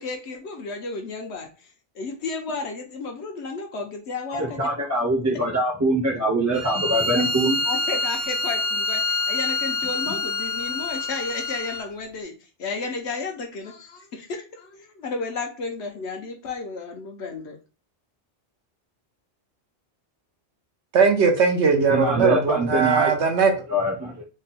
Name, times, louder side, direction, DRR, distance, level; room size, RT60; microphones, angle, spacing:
voice 1, 0.0-1.7 1.9-4.6 6.9-7.2 7.6-12.3 12.6-17.6, left 4 dB, 75° left, 3 dB, 1.1 m, -33 dB
voice 2, 4.3-7.6 21.7-23.1 23.7-24.2, right 1 dB, 20° right, -1 dB, 0.6 m, -24 dB
Bowed string instrument, 6.5-11.9, left 2 dB, 55° left, 0.8 m, -26 dB
voice 3, 20.9-23.5, right 5 dB, 80° right, 4 dB, 1.1 m, -19 dB
3.8 x 2.2 x 4.1 m, 0.34 s
omnidirectional pair, 1.1 m